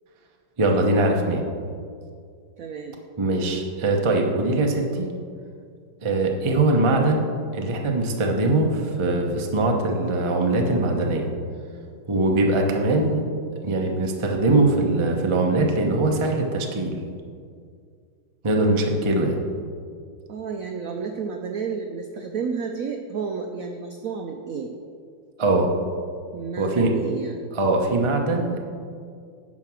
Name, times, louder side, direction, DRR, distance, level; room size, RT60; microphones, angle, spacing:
voice 1, 0.6-1.4 3.2-5.1 6.0-7.2 7.5-11.3 12.1-13.2 13.6-17.0 18.4-19.4 25.4-25.7 26.6-26.9 27.6-28.6, right 2 dB, 35° right, 1 dB, 0.4 m, -21 dB
voice 2, 2.6-3.0 20.3-24.7 26.3-27.5, right 5 dB, 75° right, 4 dB, 0.7 m, -31 dB
9.8 x 5.3 x 6.1 m, 2.2 s
omnidirectional pair, 2.1 m